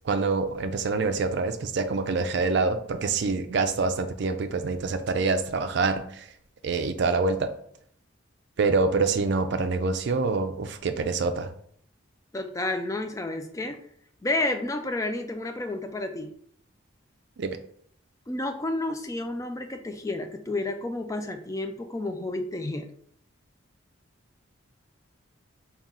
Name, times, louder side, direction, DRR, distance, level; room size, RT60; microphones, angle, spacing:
voice 1, 0.1-6.3 6.6-7.5 8.6-11.5 17.4-17.6, right 4 dB, 55° right, 8 dB, 0.4 m, -26 dB
voice 2, 12.3-13.8 14.2-16.3 18.3-22.9, left 2 dB, 15° left, 6 dB, 0.3 m, -30 dB
3.6 x 2.4 x 4.0 m, 0.63 s
head